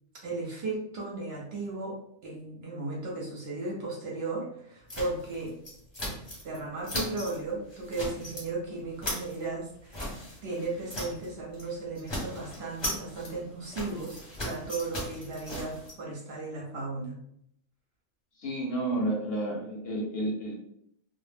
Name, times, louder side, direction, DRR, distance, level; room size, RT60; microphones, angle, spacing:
voice 1, 0.2-2.0 2.2-5.5 6.0-6.2 6.4-10.1 10.4-14.2 14.4-17.2, right 3 dB, 60° right, -2 dB, 0.7 m, -35 dB
sound 1, 4.9-6.6 6.8-7.4 7.7-8.5 8.8-11.3 11.5-11.7 12.0-15.9, equal, 25° left, 0.6 m, -38 dB
voice 2, 18.4-20.5, right 1 dB, 60° left, -2 dB, 0.7 m, -31 dB
2.1 x 2.1 x 3.2 m, 0.71 s
omnidirectional pair, 1.3 m